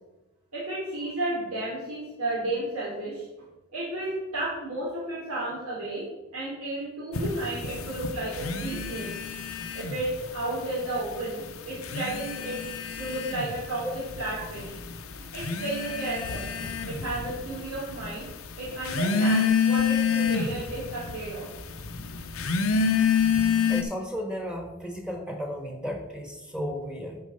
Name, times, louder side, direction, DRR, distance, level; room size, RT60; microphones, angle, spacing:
voice 1, 0.5-3.2 3.7-6.0 6.3-9.1 9.7-12.6 13.0-14.8 15.3-18.3 18.6-21.5, right 2 dB, 85° right, -7 dB, 3.0 m, -33 dB
sound 1, 7.1-10.2 10.5-11.3 11.7-23.8, left 6 dB, 75° left, 0.7 m, -28 dB
voice 2, 23.7-27.2, equal, 5° right, 1 dB, 1.4 m, -34 dB
9.6 x 4.8 x 5.3 m, 1.0 s
head